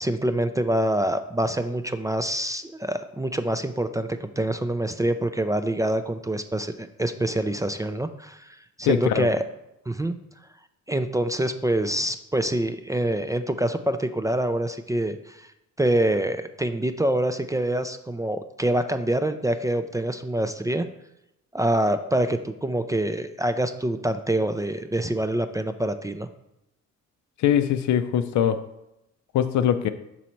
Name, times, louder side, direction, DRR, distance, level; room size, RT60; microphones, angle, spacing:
voice 1, 0.0-9.4 9.9-10.2 10.9-15.5 15.8-20.9 21.5-26.3, right 1 dB, 10° right, 9 dB, 0.3 m, -26 dB
voice 2, 8.9-9.3 27.4-28.6 29.3-29.9, left 9 dB, 70° left, 10 dB, 0.5 m, -22 dB
6.2 x 4.1 x 4.4 m, 0.88 s
cardioid pair, 90°, 30 cm